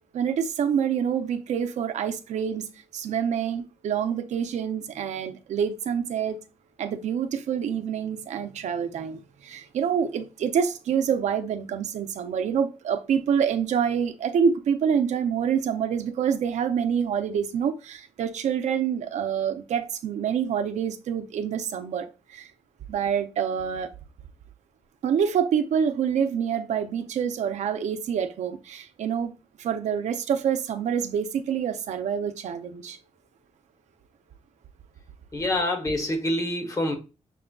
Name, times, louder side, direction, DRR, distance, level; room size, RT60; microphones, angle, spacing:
voice 1, 0.1-2.7 2.9-6.4 6.8-22.5 22.9-23.9 25.0-29.3 29.6-33.0, right 7 dB, 85° right, 0.6 m, -26 dB
voice 2, 35.3-36.9, left 1 dB, 30° left, 1.1 m, -26 dB
6.1 x 3.7 x 2.3 m
wide cardioid pair, 145°, 12 cm